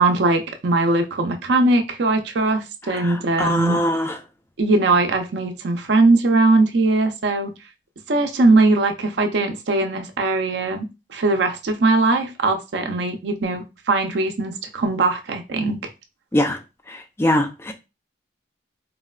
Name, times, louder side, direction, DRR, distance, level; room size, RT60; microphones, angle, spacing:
voice 1, 0.0-3.8 4.6-7.5 8.1-15.8, right 2 dB, 70° right, 0.5 m, -20 dB
voice 2, 2.9-4.2 16.3-16.6 16.9-17.7, left 1 dB, 15° left, 0.3 m, -22 dB
3.8 x 2.1 x 2.3 m
head